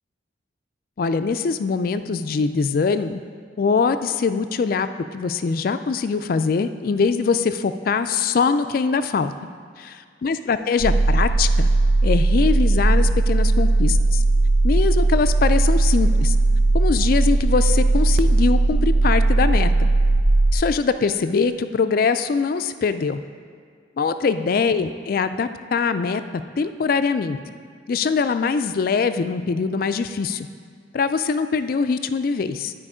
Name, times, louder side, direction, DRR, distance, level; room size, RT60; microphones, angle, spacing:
voice 1, 1.0-3.2 3.6-4.9 5.1-9.3 9.8-9.9 10.2-11.7 12.0-14.2 14.6-16.4 16.7-19.9 20.5-23.2 24.0-26.2 26.6-27.4 27.9-30.5 30.9-32.7, left 5 dB, 50° left, 11 dB, 0.3 m, -22 dB
sound 1, 10.8-20.6, right 2 dB, 70° right, 0.4 m, -18 dB
12.0 x 4.5 x 4.9 m, 2.1 s
head